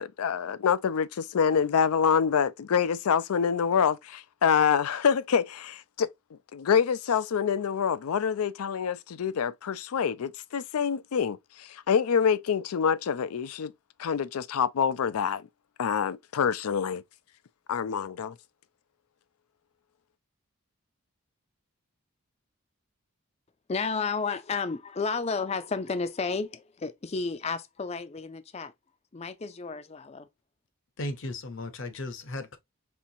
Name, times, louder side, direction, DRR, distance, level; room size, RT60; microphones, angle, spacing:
voice 1, 0.0-6.1 6.5-13.7 14.0-15.5 15.8-17.0 17.7-18.3, left 7 dB, 85° left, 0.4 m, -26 dB
voice 2, 23.7-28.7 29.1-30.3, left 4 dB, 30° left, 0.4 m, -32 dB
voice 3, 31.0-32.6, left 2 dB, 60° left, 0.7 m, -36 dB
4.4 x 3.4 x 2.7 m
head